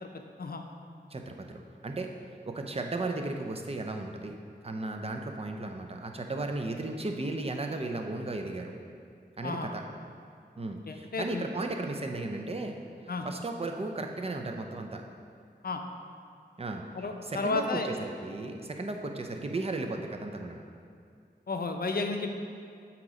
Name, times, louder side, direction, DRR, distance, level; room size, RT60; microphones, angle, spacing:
voice 1, 1.1-2.1 2.4-4.3 4.6-8.8 9.4-9.8 10.6-12.8 13.2-15.0 16.6-16.8 17.2-20.6, right 2 dB, 35° right, 3 dB, 0.6 m, -35 dB
voice 2, 10.9-11.5 13.1-13.3 15.6-15.8 16.9-17.9 21.5-22.3, left 3 dB, 60° left, 4 dB, 0.5 m, -32 dB
7.8 x 3.0 x 4.9 m, 2.3 s
wide cardioid pair, 55°, 18 cm